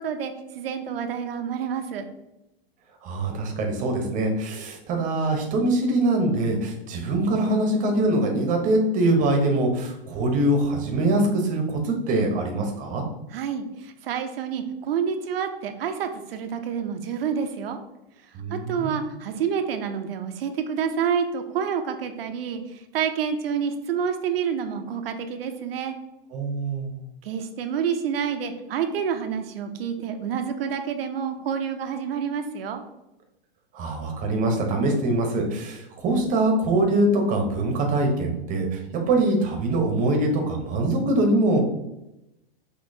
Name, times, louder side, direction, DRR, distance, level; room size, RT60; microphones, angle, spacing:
voice 1, 0.0-2.0 13.3-17.8 18.5-26.0 27.2-32.8, right 7 dB, 75° right, 6 dB, 0.6 m, -28 dB
voice 2, 3.0-13.0 18.3-19.0 26.3-27.0 33.7-41.6, right 2 dB, 25° right, 3 dB, 0.9 m, -23 dB
6.0 x 2.8 x 2.7 m, 0.91 s
hypercardioid pair, 135°, 29 cm